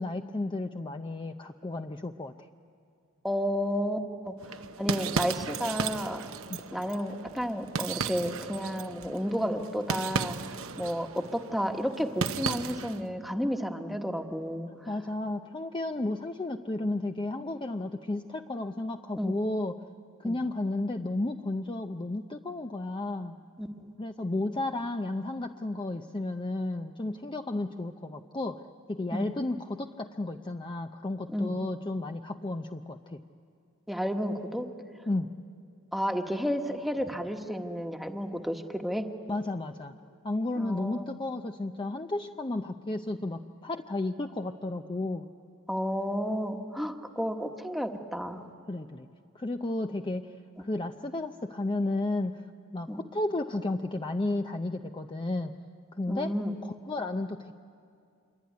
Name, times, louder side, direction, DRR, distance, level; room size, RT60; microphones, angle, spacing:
voice 1, 0.0-2.3 6.5-6.6 14.9-19.8 20.2-23.3 24.0-28.6 28.9-33.2 35.1-35.3 39.3-39.9 40.2-45.3 48.7-49.1 49.3-52.5 52.7-55.5 56.0-56.4 56.6-57.5, left 2 dB, 20° left, 6 dB, 0.6 m, -33 dB
voice 2, 3.2-4.3 4.8-6.2 6.7-10.4 10.8-14.9 19.2-19.3 20.2-20.4 23.6-23.7 29.1-29.3 31.3-31.5 33.9-34.7 35.9-39.0 40.6-41.1 45.7-48.4 52.9-53.0 56.1-56.5, equal, ahead, 4 dB, 1.3 m, -31 dB
sound 1, 4.4-13.1, right 5 dB, 70° right, 0.9 m, -35 dB
26.5 x 23.5 x 9.5 m, 2.4 s
head